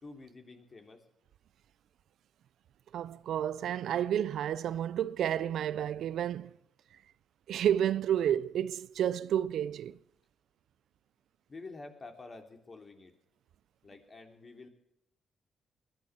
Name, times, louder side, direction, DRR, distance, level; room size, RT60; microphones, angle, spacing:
voice 1, 0.0-1.0 11.5-13.1 13.8-14.7, left 3 dB, 40° left, 3.1 m, -49 dB
voice 2, 2.9-6.5 7.5-10.0, right 10 dB, 75° right, 0.5 m, -30 dB
20.0 x 11.5 x 6.1 m
supercardioid pair, 50°, 0 cm